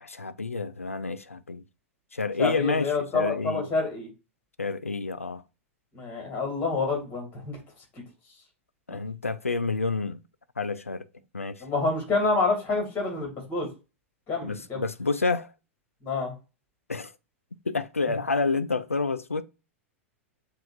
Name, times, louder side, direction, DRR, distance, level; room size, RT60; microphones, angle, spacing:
voice 1, 0.0-1.6 2.1-3.7 4.6-5.4 8.9-10.2 10.6-11.1 11.3-11.6 14.4-15.5 16.9-17.1 17.7-19.4, left 4 dB, 85° left, 0.3 m, -29 dB
voice 2, 2.4-4.1 5.9-7.6 8.9-9.0 11.6-13.7 14.3-14.8 16.0-16.3 18.1-18.2, left 3 dB, 25° left, 2.3 m, -27 dB
7.5 x 2.6 x 2.4 m
figure-of-eight pair, 95°, 7 cm